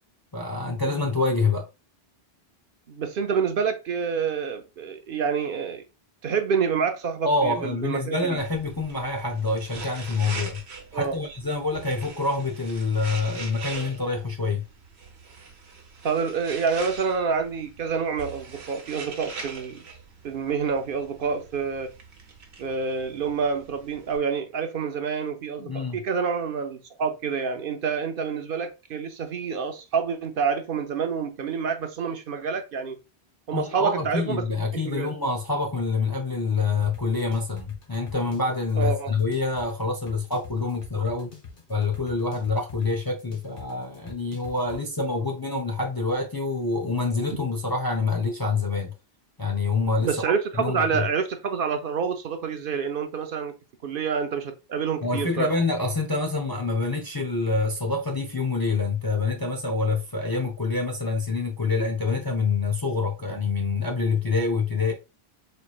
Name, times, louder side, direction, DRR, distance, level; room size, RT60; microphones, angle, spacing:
voice 1, 0.3-1.7 7.2-10.6 10.9-14.6 25.6-26.0 33.5-41.3 41.7-48.9 49.4-51.0 55.0-64.9, left 3 dB, 30° left, 0.4 m, -26 dB
voice 2, 2.9-5.8 6.2-8.4 10.9-11.2 16.0-19.8 20.2-21.9 22.6-33.0 33.5-34.4 34.7-35.1 38.8-39.1 50.0-53.5 53.8-55.5, right 6 dB, 65° right, 0.7 m, -27 dB
sound 1, 8.4-24.2, right 4 dB, 90° right, 1.1 m, -42 dB
sound 2, 36.8-44.8, left 4 dB, 60° left, 1.2 m, -45 dB
4.2 x 3.1 x 2.3 m
omnidirectional pair, 1.1 m